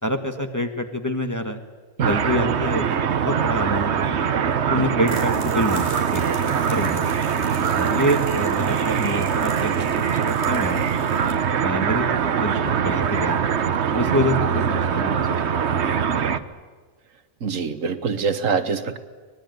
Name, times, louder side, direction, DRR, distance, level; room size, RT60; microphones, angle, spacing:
voice 1, 0.0-1.6 2.1-4.2 4.7-7.1 7.7-10.8 11.6-13.5 13.9-15.2 15.7-15.9 16.3-16.4, equal, 15° left, 5 dB, 1.6 m, -27 dB
sound 1, 2.0-16.4, right 7 dB, 60° right, 1.2 m, -22 dB
sound 2, 5.0-11.3, left 1 dB, 40° left, 4.1 m, -42 dB
voice 2, 17.4-19.0, right 5 dB, 75° right, 11 dB, 1.6 m, -24 dB
24.5 x 19.5 x 9.3 m, 1.4 s
omnidirectional pair, 1.4 m